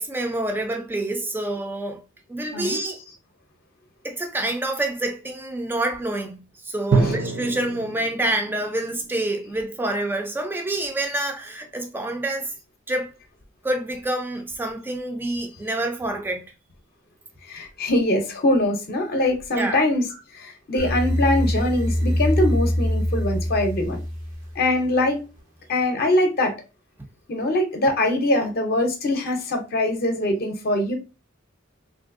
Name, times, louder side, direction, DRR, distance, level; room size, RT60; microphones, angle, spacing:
voice 1, 0.0-2.0 2.3-3.0 4.0-12.5 12.9-13.1 13.6-16.4 19.6-19.8, right 1 dB, 10° right, 0.4 m, -27 dB
Drum, 6.9-10.7, right 4 dB, 55° right, 0.6 m, -28 dB
voice 2, 17.4-24.0 24.5-25.2 25.7-26.5 27.3-31.0, left 1 dB, 50° left, 0.6 m, -23 dB
sound 1, 20.8-24.8, equal, 90° right, 0.8 m, -24 dB
3.2 x 2.5 x 2.4 m
head